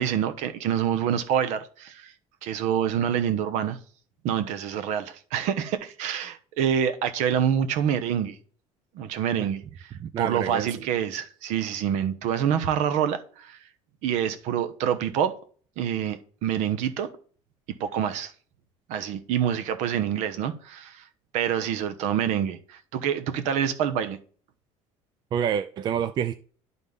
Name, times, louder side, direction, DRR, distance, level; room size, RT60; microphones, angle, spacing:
voice 1, 0.0-2.1 2.4-3.8 4.2-8.3 8.9-9.6 10.2-13.6 14.0-15.3 15.8-17.1 17.8-18.3 18.9-21.0 21.3-24.2, right 9 dB, 70° right, 1.0 m, -26 dB
voice 2, 10.0-10.9 25.3-26.4, right 8 dB, 35° right, 0.4 m, -28 dB
11.5 x 4.1 x 3.6 m
cardioid pair, 150°, 13 cm